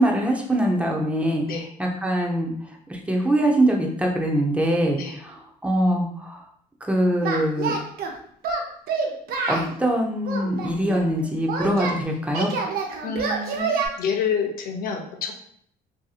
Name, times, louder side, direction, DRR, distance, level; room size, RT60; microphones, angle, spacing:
voice 1, 0.0-1.4 1.8-2.5 2.9-6.4 6.9-7.7 9.5-12.5, right 1 dB, 5° right, 0 dB, 0.5 m, -23 dB
Singing, 7.2-8.1 8.4-9.7 10.3-12.0 12.3-13.9, right 4 dB, 65° right, 0.5 m, -27 dB
voice 2, 13.0-15.3, left 6 dB, 60° left, 3 dB, 0.5 m, -28 dB
2.7 x 2.6 x 2.3 m, 0.66 s
cardioid pair, 110°, 17 cm